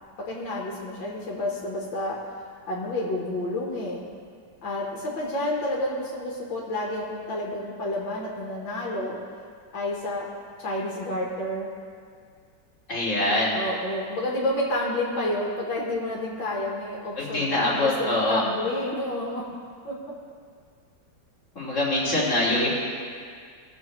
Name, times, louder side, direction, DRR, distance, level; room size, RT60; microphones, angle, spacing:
voice 1, 0.3-2.2 2.7-4.0 4.6-9.2 9.7-10.3 10.6-11.7 13.3-19.4 19.8-20.0, left 1 dB, 70° left, -3 dB, 2.0 m, -30 dB
voice 2, 12.9-13.6 17.2-18.4 21.5-22.7, left 1 dB, 35° left, -7 dB, 2.7 m, -24 dB
19.5 x 7.1 x 3.2 m, 2.1 s
omnidirectional pair, 2.2 m